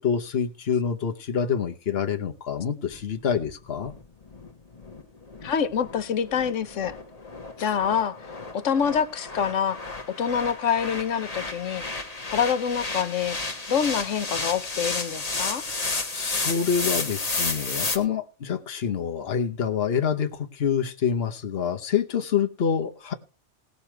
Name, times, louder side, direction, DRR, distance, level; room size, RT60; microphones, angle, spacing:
voice 1, 0.0-3.9 7.6-7.7 15.7-23.1, left 7 dB, 55° left, 1.3 m, -27 dB
sound 1, 2.9-18.0, left 3 dB, 30° left, 1.4 m, -32 dB
voice 2, 5.4-7.0 7.6-8.2 8.5-9.8 10.2-11.8 12.3-13.4 13.7-15.7, left 7 dB, 85° left, 1.3 m, -26 dB
18.0 x 6.9 x 4.5 m
omnidirectional pair, 1.2 m